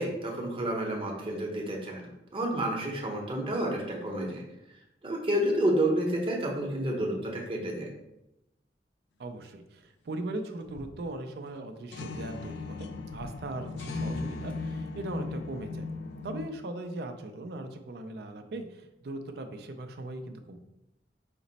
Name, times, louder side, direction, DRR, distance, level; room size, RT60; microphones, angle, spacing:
voice 1, 0.0-2.0 2.3-4.4 5.0-7.9, right 1 dB, 30° right, -1 dB, 0.8 m, -30 dB
voice 2, 9.2-15.9 16.2-20.6, right 2 dB, 60° right, 6 dB, 0.4 m, -39 dB
sound 1, 10.6-11.0 11.5-11.6 11.9-16.5, left 3 dB, 75° left, 0.4 m, -37 dB
5.1 x 2.0 x 3.9 m, 0.89 s
head